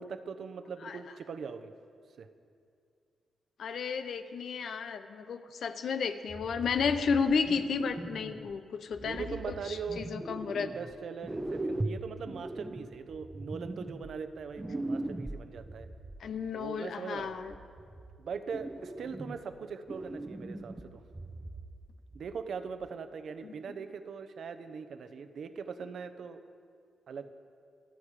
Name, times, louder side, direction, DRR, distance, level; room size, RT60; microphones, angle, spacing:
voice 1, 0.0-1.7 2.2-2.3 8.5-8.6 9.0-10.1 10.6-15.9 16.5-17.3 18.2-21.0 22.1-26.4 27.1-27.3, right 5 dB, 60° right, 10 dB, 0.9 m, -41 dB
voice 2, 3.6-9.4 9.6-10.7 16.2-17.5 23.4-23.5, left 5 dB, 65° left, 10 dB, 0.8 m, -32 dB
sound 1, 6.3-8.5 8.9-10.9 11.2-16.2 17.2-18.2 18.5-19.6 19.9-21.9 22.1-22.3 22.8-22.9, right 2 dB, 15° right, 0.9 m, -40 dB
26.5 x 9.4 x 5.0 m, 2.4 s
wide cardioid pair, 130°, 0 cm